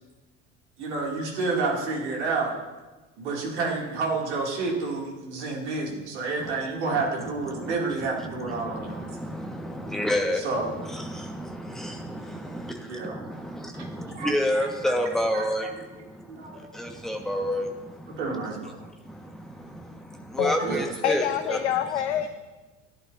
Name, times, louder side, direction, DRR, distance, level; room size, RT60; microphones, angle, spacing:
voice 1, 0.8-2.5 3.2-9.1 10.3-10.8 12.9-13.2 13.7-13.9 14.1-15.0 15.3-15.8 16.3-16.7 18.2-18.8 20.4-20.9, right 3 dB, 65° right, -1 dB, 2.5 m, -30 dB
voice 2, 8.2-18.2 18.8-21.6, equal, ahead, 3 dB, 1.4 m, -30 dB
voice 3, 21.0-22.3, left 10 dB, 65° left, 10 dB, 0.6 m, -26 dB
15.0 x 11.0 x 2.6 m, 1.2 s
figure-of-eight pair, 70°, 37 cm